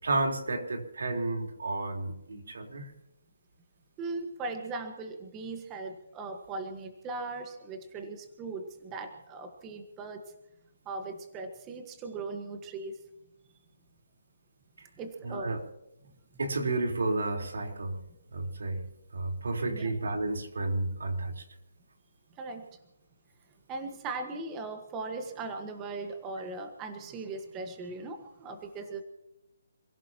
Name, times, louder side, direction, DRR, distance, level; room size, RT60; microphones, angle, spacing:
voice 1, 0.0-2.9 15.2-15.6 16.4-18.0 18.3-18.8 19.1-21.4, right 2 dB, 80° right, 3 dB, 4.1 m, -31 dB
voice 2, 4.0-10.3 10.8-13.0 15.0-15.6 19.7-19.9 22.3-22.6 23.7-29.0, right 3 dB, 15° right, 6 dB, 1.5 m, -39 dB
28.0 x 16.5 x 3.0 m, 0.93 s
hypercardioid pair, 165°, 0 cm